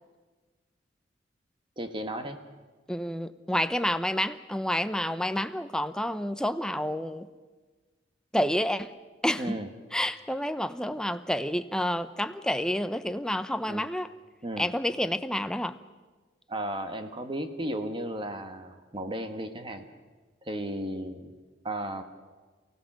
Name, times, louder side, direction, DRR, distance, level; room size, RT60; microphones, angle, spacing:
voice 1, 1.8-2.4 9.4-9.7 13.7-13.8 14.4-14.7 16.5-19.9 20.4-21.3 21.6-22.0, right 1 dB, 30° right, 7 dB, 1.6 m, -34 dB
voice 2, 2.9-7.3 8.3-8.9 9.2-9.6 9.9-14.1 14.6-15.8, left 1 dB, 5° left, 11 dB, 0.8 m, -29 dB
29.0 x 17.0 x 7.5 m, 1.4 s
head